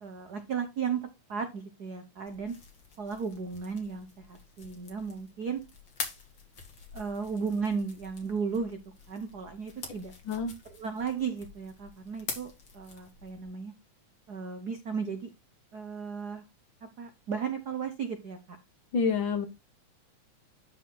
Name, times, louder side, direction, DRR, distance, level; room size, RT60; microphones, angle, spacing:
voice 1, 0.0-2.5 3.0-5.6 6.9-8.8 9.1-10.1 10.7-13.7 14.3-15.3 15.7-16.4 17.0-18.6, right 6 dB, 75° right, 0.9 m, -35 dB
sound 1, 2.3-13.4, left 4 dB, 40° left, 2.6 m, -46 dB
voice 2, 18.9-19.5, left 5 dB, 60° left, 1.4 m, -27 dB
11.5 x 4.7 x 3.9 m
omnidirectional pair, 3.4 m